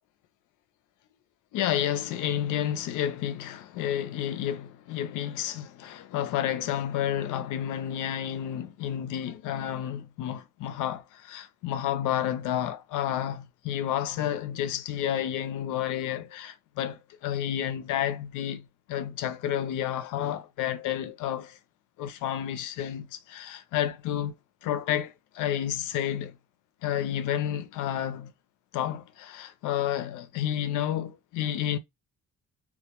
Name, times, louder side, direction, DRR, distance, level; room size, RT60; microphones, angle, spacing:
voice 1, 1.5-21.6 22.0-24.3 24.6-26.4 26.8-28.3 28.7-31.8, left 11 dB, 85° left, 0.5 m, -30 dB
2.1 x 2.1 x 2.9 m
cardioid pair, 90°, 30 cm